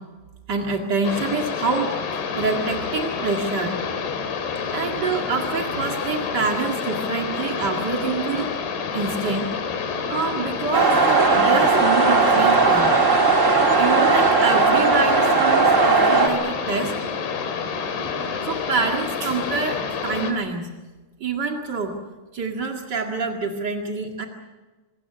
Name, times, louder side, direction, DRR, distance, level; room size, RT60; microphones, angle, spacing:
voice 1, 0.5-3.8 4.7-8.5 8.9-9.5 10.1-12.9 13.8-17.0 18.4-20.7 21.2-21.9 22.3-24.2, right 4 dB, 60° right, 2 dB, 1.1 m, -26 dB
sound 1, 1.0-20.3, left 5 dB, 60° left, 4.3 m, -28 dB
sound 2, 10.7-16.3, right 4 dB, 30° right, 1.3 m, -17 dB
26.0 x 22.5 x 6.9 m, 1.2 s
omnidirectional pair, 5.4 m